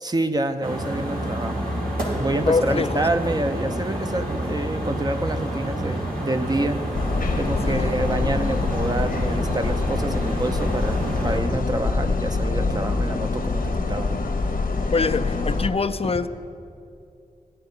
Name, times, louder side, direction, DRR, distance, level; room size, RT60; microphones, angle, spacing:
voice 1, 0.0-1.7 2.2-6.8 7.4-14.1, right 2 dB, 30° right, 7 dB, 0.7 m, -27 dB
sound 1, 0.6-11.4, right 1 dB, 85° right, 2.6 m, -28 dB
voice 2, 2.5-3.0 7.3-7.4 7.7-7.9 14.9-16.3, left 4 dB, 45° left, 10 dB, 0.4 m, -24 dB
sound 2, 6.9-15.7, left 3 dB, 80° left, 1.0 m, -25 dB
16.0 x 10.5 x 3.9 m, 2.5 s
wide cardioid pair, 70°, 15 cm